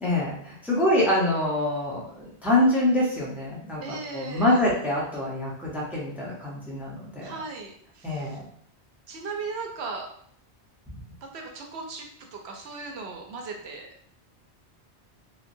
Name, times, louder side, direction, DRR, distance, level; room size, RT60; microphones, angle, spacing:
voice 1, 0.0-7.3 8.0-8.4 10.9-11.0, left 1 dB, ahead, -5 dB, 0.6 m, -25 dB
voice 2, 3.8-4.6 7.2-8.4 9.1-10.1 11.2-12.0 12.3-13.9, right 4 dB, 75° right, 2 dB, 0.9 m, -37 dB
3.0 x 2.1 x 2.5 m, 0.66 s
omnidirectional pair, 1.1 m